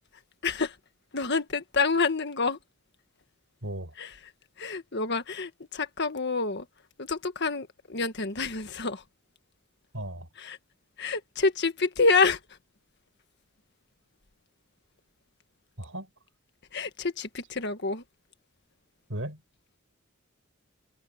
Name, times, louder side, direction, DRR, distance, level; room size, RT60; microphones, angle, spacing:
voice 1, 0.4-0.8 1.1-2.6 4.0-4.1 4.6-6.7 7.0-9.0 10.4-10.6 11.0-12.6 16.7-18.0, left 4 dB, 55° left, 1.7 m, -28 dB
voice 2, 3.6-3.9 9.9-10.3 15.8-16.1 19.1-19.4, right 1 dB, 65° right, 7.1 m, -36 dB
head